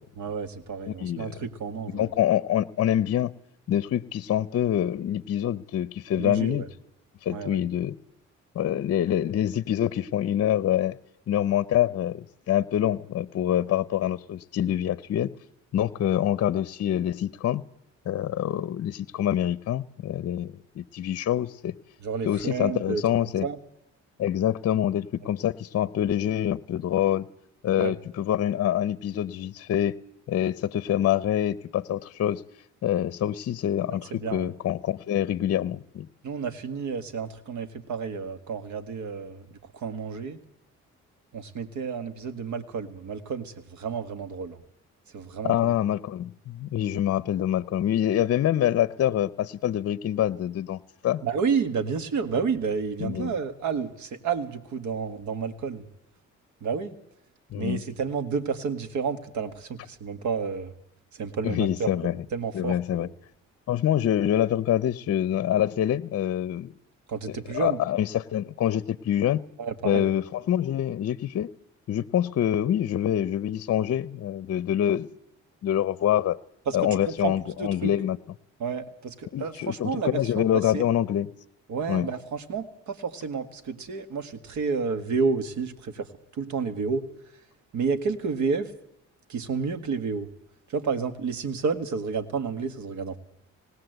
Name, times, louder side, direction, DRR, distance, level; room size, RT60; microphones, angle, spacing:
voice 1, 0.2-2.1 6.2-6.7 7.3-7.6 22.0-23.0 23.4-23.6 27.8-28.0 33.9-34.5 36.2-40.4 41.3-44.6 45.1-45.7 51.2-55.9 56.6-57.0 57.6-60.7 61.1-63.1 67.1-67.8 69.6-70.1 76.7-78.0 78.6-80.8 81.7-87.0 87.7-88.7 89.3-90.3 90.7-93.2, right 5 dB, 70° right, 11 dB, 1.8 m, -30 dB
voice 2, 1.0-1.3 1.9-3.3 3.7-6.6 7.2-8.0 8.5-11.0 11.3-15.3 15.7-17.6 18.1-21.7 22.2-23.5 24.2-27.3 27.6-30.0 30.3-32.4 32.8-36.1 45.4-51.2 53.0-53.3 57.5-57.8 61.4-62.1 62.5-63.1 63.7-66.7 67.3-69.4 69.8-71.5 71.9-75.1 75.6-76.4 76.7-78.2 79.3-81.3 81.9-82.1, left 11 dB, 55° left, 19 dB, 0.7 m, -26 dB
19.5 x 17.0 x 7.9 m, 0.82 s
cardioid pair, 90°, 30 cm